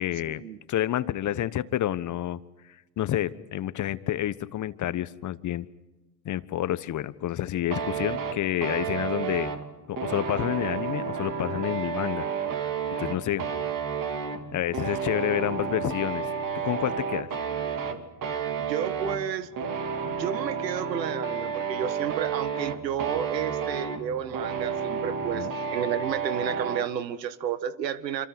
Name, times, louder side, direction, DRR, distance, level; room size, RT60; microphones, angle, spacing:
voice 1, 0.0-0.4 0.7-2.4 3.0-5.7 6.2-9.5 9.9-12.3 13.0-13.5 14.5-16.3 16.5-17.3 25.3-25.5, left 12 dB, 35° left, 15 dB, 1.3 m, -29 dB
sound 1, 7.7-26.9, right 6 dB, 40° right, 2.8 m, -31 dB
voice 2, 18.6-19.5 20.0-28.3, right 9 dB, 85° right, 14 dB, 1.7 m, -31 dB
27.0 x 27.0 x 6.1 m, 1.1 s
hypercardioid pair, 80°, 49 cm